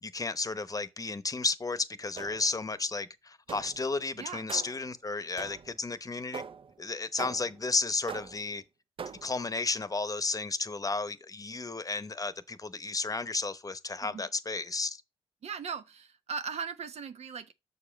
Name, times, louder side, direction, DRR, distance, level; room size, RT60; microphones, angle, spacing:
voice 1, 0.0-6.4 6.8-8.6 9.2-15.0, left 3 dB, 30° left, 0.8 m, -33 dB
sound 1, 2.2-2.7 3.5-3.9 4.5-4.9 5.4-5.8 6.3-6.7 7.2-7.7 8.1-8.5 9.0-9.4, right 6 dB, 50° right, 0.6 m, -42 dB
voice 2, 15.4-17.5, right 6 dB, 70° right, 0.9 m, -38 dB
6.6 x 4.8 x 5.1 m
cardioid pair, 55°, 12 cm